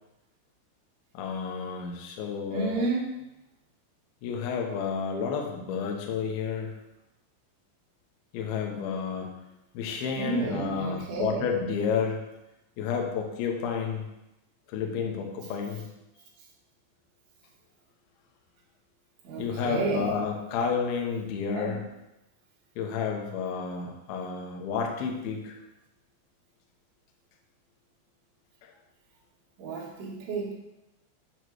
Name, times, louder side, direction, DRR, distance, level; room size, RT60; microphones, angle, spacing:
voice 1, 1.1-2.9 4.2-6.7 8.3-9.3 9.7-12.2 12.8-14.1 14.7-15.9 19.4-21.8 22.8-25.6, left 6 dB, 80° left, 1 dB, 2.2 m, -31 dB
voice 2, 2.5-3.1 10.1-11.5 19.2-20.1 21.5-21.7 29.6-30.5, right 4 dB, 70° right, -4 dB, 3.7 m, -31 dB
8.8 x 3.1 x 6.3 m, 0.93 s
omnidirectional pair, 5.9 m